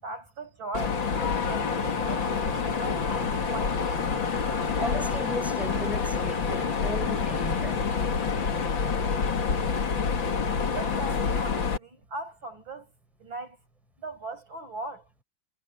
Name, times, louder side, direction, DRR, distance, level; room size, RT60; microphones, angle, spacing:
voice 1, 0.0-4.0 10.6-12.9 13.2-13.6 14.0-15.1, right 2 dB, 85° right, 7.8 m, -39 dB
Mechanisms, 0.7-11.8, left 5 dB, 75° left, 2.7 m, -27 dB
voice 2, 4.8-7.9, right 1 dB, ahead, 5.6 m, -37 dB
omnidirectional pair, 2.1 m